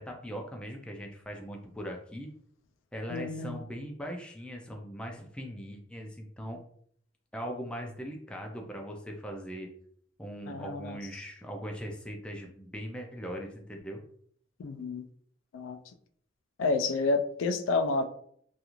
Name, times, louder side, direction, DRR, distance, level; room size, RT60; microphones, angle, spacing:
voice 1, 0.0-2.3 2.9-6.6 7.3-9.7 10.2-14.0, equal, 5° left, 1 dB, 0.3 m, -40 dB
voice 2, 3.1-3.6 10.5-11.0 14.6-15.0 15.5-15.8 16.6-18.0, left 3 dB, 80° left, 8 dB, 0.3 m, -29 dB
2.4 x 2.4 x 2.9 m, 0.63 s
head